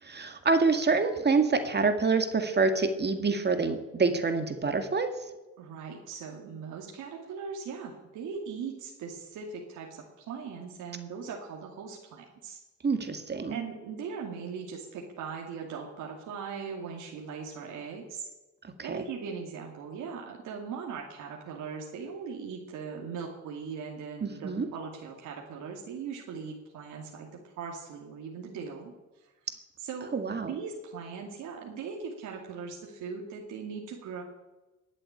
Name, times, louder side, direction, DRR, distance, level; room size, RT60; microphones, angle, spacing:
voice 1, 0.0-5.1 12.8-13.6 18.6-19.0 24.2-24.7 30.1-30.6, right 4 dB, 35° right, 7 dB, 1.9 m, -27 dB
voice 2, 5.6-12.6 13.5-18.3 18.8-28.9 29.2-29.3 29.8-30.1 30.4-34.2, right 6 dB, 85° right, 0 dB, 2.5 m, -39 dB
20.5 x 7.8 x 8.9 m, 1.1 s
cardioid pair, 90°, 30 cm